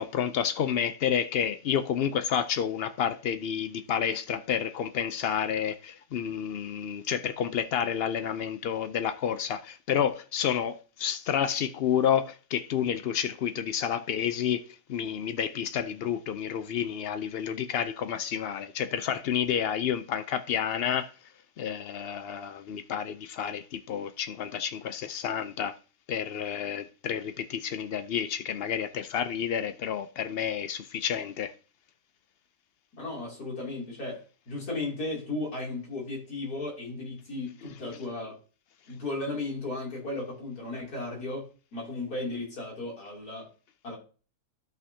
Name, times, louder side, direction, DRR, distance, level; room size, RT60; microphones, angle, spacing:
voice 1, 0.0-14.6 14.9-21.1 21.6-25.7 26.1-31.5, left 8 dB, 85° left, 0.5 m, -30 dB
voice 2, 32.9-38.4 38.9-43.5 43.8-44.0, left 2 dB, 70° left, 3.3 m, -35 dB
13.0 x 5.8 x 2.7 m
omnidirectional pair, 1.7 m